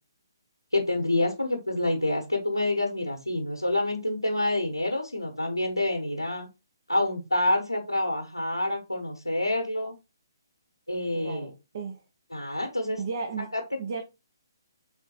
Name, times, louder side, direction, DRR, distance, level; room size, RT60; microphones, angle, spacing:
voice 1, 0.7-6.5 6.9-9.9 10.9-11.5 12.3-13.0 13.5-13.6, left 1 dB, 85° left, 1.1 m, -27 dB
voice 2, 11.1-12.0 13.0-13.5 13.8-14.0, right 5 dB, 45° right, 0.7 m, -34 dB
4.0 x 3.7 x 2.9 m
figure-of-eight pair, 135°, 2 cm